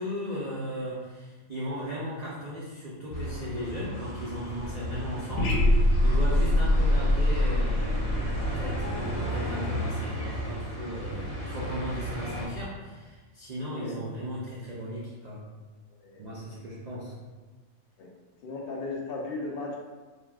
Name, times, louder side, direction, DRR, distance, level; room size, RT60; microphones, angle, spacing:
voice 1, 0.0-15.4 16.2-17.1, equal, 75° right, -7 dB, 0.3 m, -36 dB
sound 1, 3.1-12.5, equal, 15° right, 0.8 m, -33 dB
sound 2, 5.4-9.5, left 1 dB, 90° left, 1.0 m, -24 dB
voice 2, 18.4-19.8, left 3 dB, 65° left, -1 dB, 0.6 m, -35 dB
3.4 x 2.3 x 2.3 m, 1.3 s
omnidirectional pair, 1.4 m